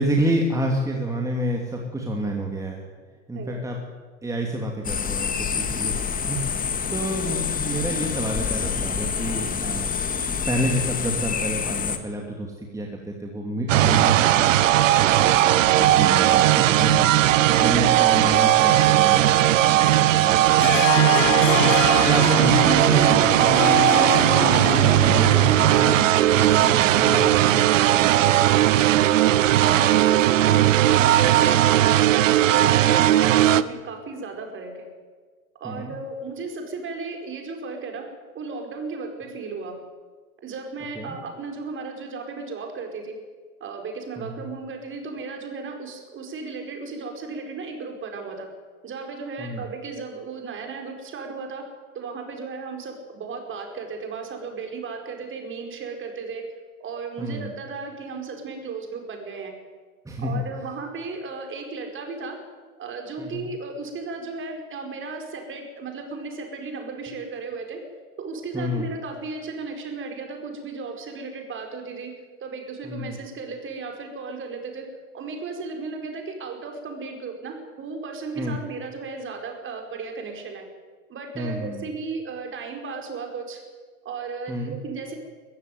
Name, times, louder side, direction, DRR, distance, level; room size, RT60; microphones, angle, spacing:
voice 1, 0.0-2.9 3.3-3.8 4.2-9.9 10.3-14.7 15.0-17.1 17.6-19.4 19.6-20.9 21.6-21.7 22.0-28.1 35.6-35.9 41.0-41.2 44.2-44.4 49.4-49.6 57.2-57.5 60.0-60.4 63.2-63.5 68.5-68.9 72.8-73.2 78.4-78.6 81.3-81.8 84.5-84.8, right 1 dB, 10° right, 0 dB, 2.8 m, -29 dB
sound 1, 4.8-12.0, left 6 dB, 20° left, 1.9 m, -27 dB
sound 2, 13.7-33.6, right 13 dB, 65° right, 1.0 m, -18 dB
Harp, 20.6-26.1, left 13 dB, 60° left, 1.0 m, -27 dB
voice 2, 29.7-34.9 35.6-38.1 38.3-39.7 40.4-43.1 43.6-48.5 48.8-51.7 51.9-56.4 56.8-59.5 60.2-62.4 62.8-67.8 68.2-72.1 72.4-74.9 75.1-80.6 81.1-83.6 84.0-85.2, right 4 dB, 30° right, 3 dB, 5.1 m, -35 dB
22.5 x 15.0 x 9.5 m, 1.5 s
figure-of-eight pair, 90°, 42 cm